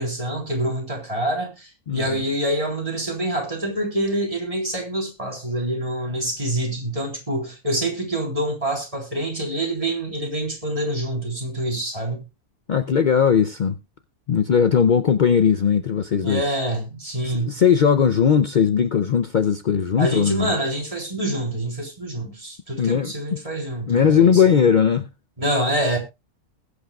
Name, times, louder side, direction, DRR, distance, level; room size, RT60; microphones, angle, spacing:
voice 1, 0.0-12.2 16.2-17.6 20.0-24.6 25.4-26.0, right 1 dB, 20° right, 3.8 m, -26 dB
voice 2, 1.9-2.2 12.7-13.8 14.3-16.4 17.2-20.5 22.8-23.1 23.9-25.1, left 7 dB, 65° left, 0.4 m, -18 dB
20.5 x 8.3 x 2.4 m
omnidirectional pair, 1.6 m